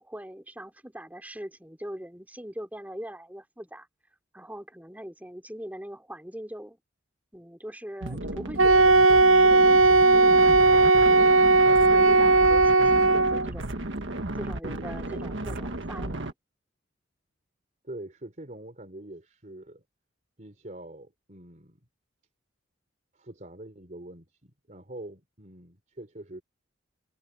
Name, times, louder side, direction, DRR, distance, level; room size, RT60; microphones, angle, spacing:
voice 1, 0.0-3.9 4.3-6.8 7.3-13.6 14.3-16.3, equal, 10° right, 3.4 m, -41 dB
sound 1, 8.0-16.3, right 1 dB, 70° right, 1.8 m, -34 dB
Wind instrument woodwind instrument, 8.6-13.5, right 3 dB, 90° right, 0.7 m, -18 dB
voice 2, 17.8-19.8 20.4-21.8 23.1-26.4, right 1 dB, 40° right, 3.4 m, -44 dB
head